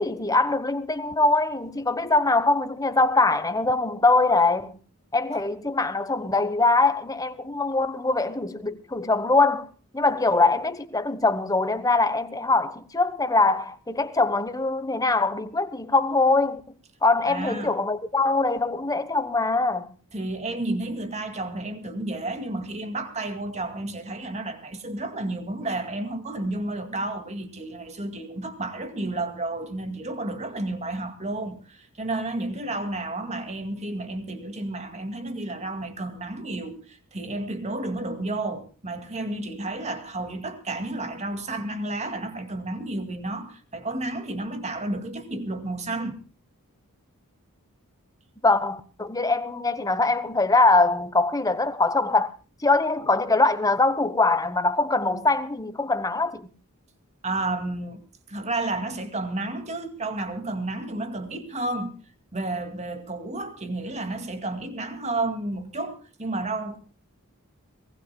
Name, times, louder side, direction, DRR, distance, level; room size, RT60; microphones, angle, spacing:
voice 1, 0.0-4.8 5.1-16.6 17.0-19.9 48.4-52.3 52.6-56.5, left 3 dB, 15° left, 1.1 m, -23 dB
voice 2, 17.2-17.8 20.1-46.2 57.2-58.0 58.3-62.0 62.3-66.8, right 2 dB, 30° right, 2.2 m, -31 dB
24.0 x 19.5 x 2.2 m
head